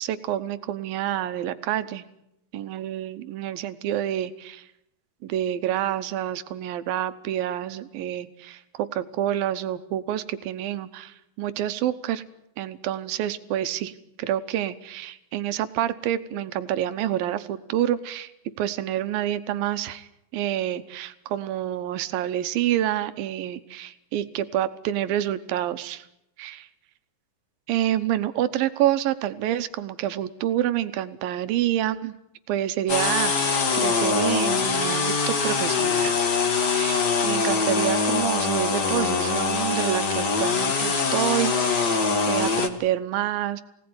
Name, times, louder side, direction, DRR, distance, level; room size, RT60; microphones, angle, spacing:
voice 1, 0.0-2.0 2.5-4.6 5.2-12.2 12.6-13.9 14.2-18.3 18.6-20.1 20.3-26.1 26.4-26.7 27.7-32.1 32.5-36.2 36.7-43.6, right 12 dB, 85° right, 11 dB, 2.8 m, -28 dB
sound 1, 32.9-42.7, left 4 dB, 40° left, 1.6 m, -23 dB
23.5 x 17.5 x 9.6 m, 0.83 s
omnidirectional pair, 4.0 m